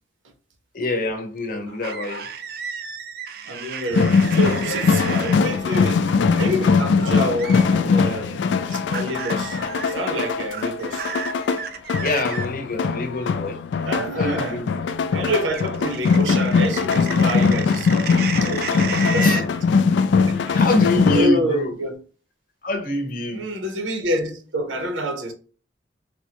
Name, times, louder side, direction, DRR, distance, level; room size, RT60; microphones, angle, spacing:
voice 1, 0.7-2.2 12.0-13.6 13.9-14.8 19.2-19.4 20.5-21.7 22.6-23.4, left 2 dB, 45° left, 0.7 m, -25 dB
sound 1, 1.7-2.4 4.4-5.7 6.0-6.3 6.6-7.3 9.3-10.3, left 1 dB, 85° left, 0.8 m, -37 dB
sound 2, 1.8-5.4 7.4-7.7 8.9-9.9 10.5-12.5 15.5-19.5, right 6 dB, 50° right, 0.4 m, -32 dB
voice 2, 3.4-6.1 6.4-9.6 9.9-11.1 13.8-14.6 15.1-19.8 20.3-20.6 21.1-22.0 23.3-25.3, right 1 dB, 85° right, 0.8 m, -28 dB
sound 3, 3.9-21.3, left 5 dB, 70° left, 0.3 m, -21 dB
3.5 x 2.1 x 2.8 m
head